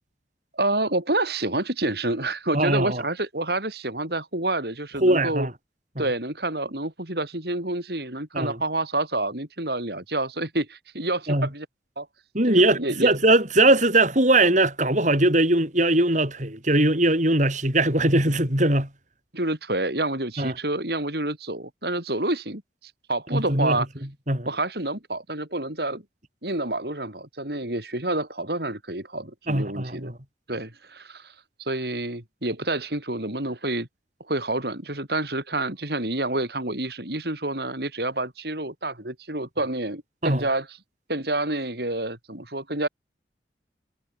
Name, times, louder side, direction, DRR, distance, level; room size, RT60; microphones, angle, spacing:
voice 1, 0.5-5.5 6.0-11.7 12.0-12.1 12.5-13.1 19.3-23.9 24.4-26.0 26.4-30.1 30.5-31.3 31.6-33.9 34.3-40.8 41.1-42.9, right 2 dB, 60° right, 4.9 m, -28 dB
voice 2, 2.5-3.0 5.0-5.5 6.0-6.1 8.3-8.6 11.3-11.5 12.3-18.9 20.4-20.5 23.3-23.8 24.3-24.5 29.5-30.1 40.2-40.5, right 2 dB, 45° right, 7.4 m, -21 dB
head